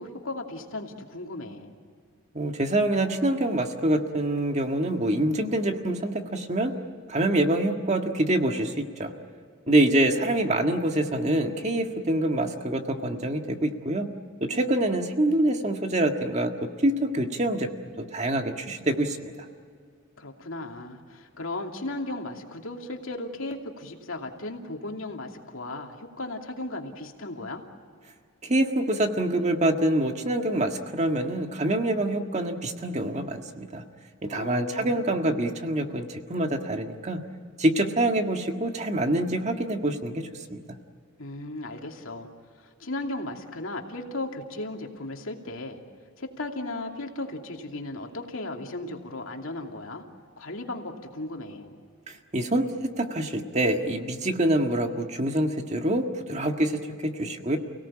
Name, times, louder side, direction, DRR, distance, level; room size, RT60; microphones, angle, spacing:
voice 1, 0.0-1.7 9.7-10.4 20.2-27.6 34.3-35.2 41.2-42.3 42.6-45.8 46.2-50.0 50.4-51.8, left 2 dB, 70° left, 2 dB, 2.8 m, -36 dB
voice 2, 2.3-6.7 7.1-9.1 9.7-14.1 14.4-17.7 18.0-19.3 28.4-33.8 34.2-37.2 37.6-40.6 52.1-57.6, right 1 dB, 35° right, 5 dB, 1.8 m, -26 dB
29.5 x 18.0 x 8.7 m, 2.2 s
head